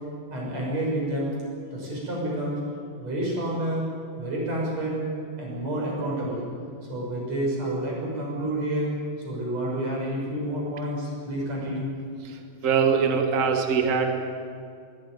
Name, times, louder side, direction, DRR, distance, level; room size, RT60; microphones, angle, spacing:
voice 1, 0.3-1.3 1.7-2.5 3.0-3.9 4.1-5.0 5.4-6.5 6.9-8.9 9.2-11.9, right 1 dB, 40° right, -3 dB, 7.7 m, -29 dB
voice 2, 12.6-14.2, right 6 dB, 85° right, 4 dB, 0.7 m, -22 dB
21.5 x 15.5 x 9.5 m, 2.3 s
omnidirectional pair, 4.5 m